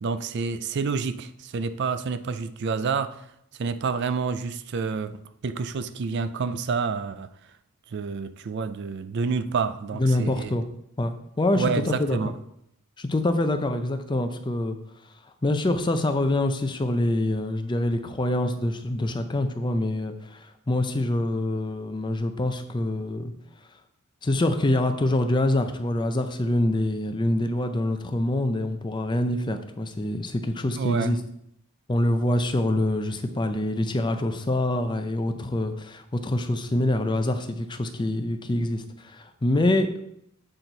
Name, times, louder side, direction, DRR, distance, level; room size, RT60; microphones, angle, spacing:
voice 1, 0.0-3.2 3.6-7.3 7.9-10.6 11.5-12.3 30.8-31.2, right 5 dB, 50° right, 0.4 m, -28 dB
voice 2, 10.0-10.7 11.0-12.2 13.0-14.8 15.4-23.3 24.2-31.2 31.9-39.9, left 1 dB, 20° left, 0.5 m, -25 dB
7.7 x 4.4 x 3.9 m
head